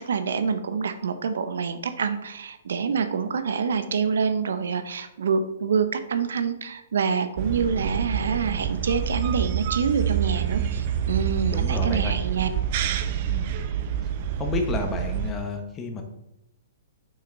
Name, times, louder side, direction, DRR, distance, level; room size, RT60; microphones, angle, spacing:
voice 1, 0.0-12.5, right 6 dB, 80° right, 10 dB, 0.7 m, -26 dB
sound 1, 7.4-15.3, right 9 dB, 45° right, 0.7 m, -27 dB
voice 2, 11.5-12.1 13.2-13.5 14.4-16.0, left 3 dB, 20° left, 4 dB, 1.0 m, -30 dB
6.3 x 5.8 x 3.9 m, 0.89 s
hypercardioid pair, 150°, 0 cm